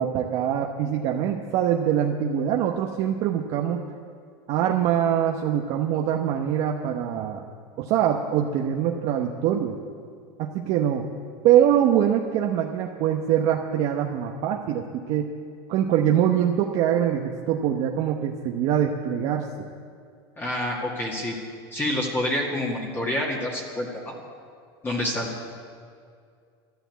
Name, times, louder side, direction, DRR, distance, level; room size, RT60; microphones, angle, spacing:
voice 1, 0.0-3.8 4.5-7.4 7.8-9.7 10.4-11.1 11.4-15.4 15.7-19.5, right 10 dB, 50° right, 2 dB, 1.0 m, -23 dB
voice 2, 20.4-21.4 21.7-24.1 24.8-25.3, left 1 dB, 15° left, -2 dB, 2.0 m, -27 dB
13.0 x 11.5 x 8.2 m, 2.3 s
supercardioid pair, 135°, 13 cm